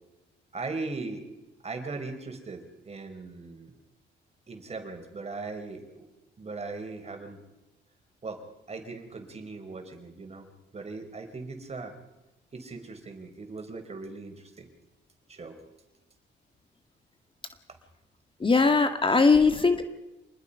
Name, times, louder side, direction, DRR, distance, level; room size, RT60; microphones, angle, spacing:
voice 1, 0.5-1.2 1.6-3.7 4.5-6.1 6.4-7.4 8.2-11.9 12.5-14.7 15.3-15.6 19.1-19.2 19.4-19.7, right 3 dB, 30° right, 6 dB, 4.8 m, -39 dB
voice 2, 18.4-19.8, left 4 dB, 25° left, 7 dB, 1.9 m, -20 dB
26.5 x 20.0 x 5.6 m, 1.0 s
cardioid pair, 90°, 20 cm